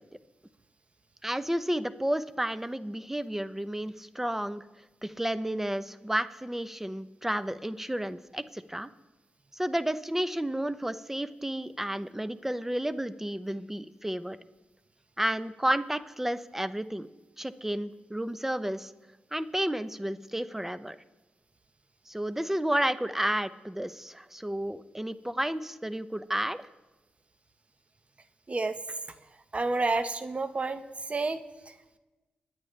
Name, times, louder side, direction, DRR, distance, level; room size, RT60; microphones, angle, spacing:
voice 1, 1.2-4.6 5.0-8.9 9.5-14.4 15.2-17.1 17.4-18.9 19.3-21.0 22.1-26.6, right 1 dB, 10° right, 13 dB, 0.7 m, -31 dB
voice 2, 29.5-30.8 31.1-31.4, right 3 dB, 35° right, 10 dB, 1.1 m, -29 dB
24.5 x 9.8 x 3.3 m, 1.1 s
cardioid pair, 55°, 4 cm